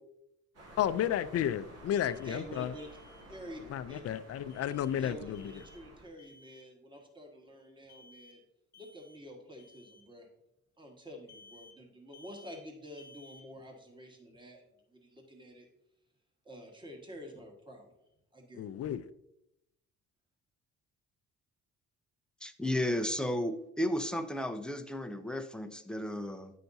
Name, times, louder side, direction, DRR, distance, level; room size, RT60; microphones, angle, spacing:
sound 1, 0.5-6.1, right 1 dB, 55° right, 1.9 m, -53 dB
voice 1, 0.8-2.7 3.7-5.4 18.6-19.0, left 10 dB, 55° left, 0.5 m, -32 dB
Alarm, 1.9-2.4 2.8-3.2 4.5-4.9 5.3-5.8 6.2-6.7 7.9-8.4 8.7-9.2 9.6-10.0 11.3-11.8 12.1-12.6 13.0-13.4, left 3 dB, 35° left, 1.0 m, -58 dB
voice 2, 2.2-2.9 3.3-4.0 5.0-8.4 8.7-10.3 10.8-15.7 16.4-18.0 18.3-18.7, equal, 15° right, 1.5 m, -48 dB
voice 3, 22.4-26.5, left 1 dB, 5° left, 0.5 m, -33 dB
9.4 x 5.7 x 2.7 m
cardioid pair, 90°, 30 cm